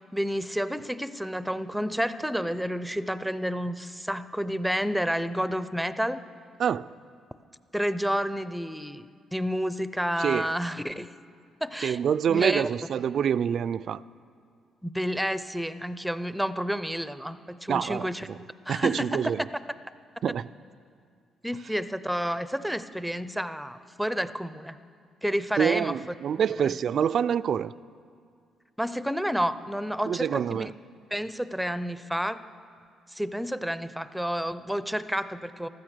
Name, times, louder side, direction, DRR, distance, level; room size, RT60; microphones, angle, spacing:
voice 1, 0.0-6.2 7.7-11.1 11.6-12.0 12.3-12.7 14.8-18.3 18.7-19.3 21.4-24.8 25.2-25.9 26.6-26.7 28.8-30.7 31.1-32.4 33.1-35.7, equal, ahead, 13 dB, 0.5 m, -30 dB
voice 2, 6.6-6.9 10.2-10.5 11.8-14.0 17.7-18.4 18.7-19.5 20.2-20.5 25.6-27.7 30.0-30.7, right 8 dB, 60° right, 15 dB, 0.3 m, -26 dB
15.0 x 13.0 x 6.6 m, 2.2 s
cardioid pair, 90°, 0 cm